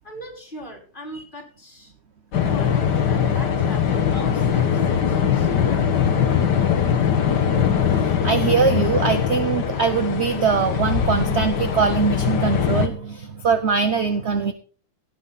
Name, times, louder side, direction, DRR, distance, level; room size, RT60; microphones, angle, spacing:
voice 1, 0.0-1.9 2.5-4.7 5.0-5.6, equal, 25° left, 0 dB, 4.1 m, -39 dB
sound 1, 2.3-12.9, left 8 dB, 65° left, 1.9 m, -21 dB
voice 2, 8.0-14.5, right 5 dB, 50° right, 9 dB, 0.9 m, -22 dB
17.0 x 8.2 x 4.1 m, 0.43 s
omnidirectional pair, 2.1 m